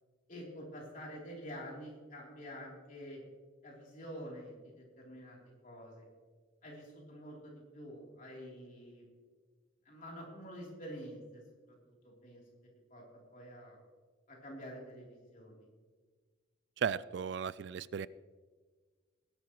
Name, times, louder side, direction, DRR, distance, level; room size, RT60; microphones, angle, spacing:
voice 1, 0.3-3.2 3.6-5.4 5.6-6.1 6.6-9.0 9.8-11.4 11.9-12.4 12.9-13.8 14.3-15.7, equal, 40° left, -2 dB, 3.4 m, -48 dB
voice 2, 16.8-18.1, right 7 dB, 60° right, 18 dB, 0.3 m, -35 dB
18.5 x 11.0 x 3.1 m, 1.5 s
head